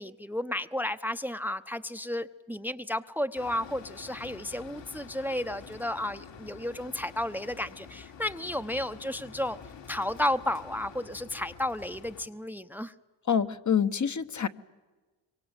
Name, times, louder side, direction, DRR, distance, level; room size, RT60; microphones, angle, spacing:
voice 1, 0.0-9.6 9.9-12.9, left 1 dB, 5° right, 10 dB, 0.9 m, -33 dB
sound 1, 3.3-12.3, left 6 dB, 65° left, 3.0 m, -48 dB
voice 2, 13.3-14.5, left 7 dB, 40° left, 10 dB, 1.2 m, -26 dB
26.0 x 24.5 x 9.1 m, 1.3 s
cardioid pair, 80°, 46 cm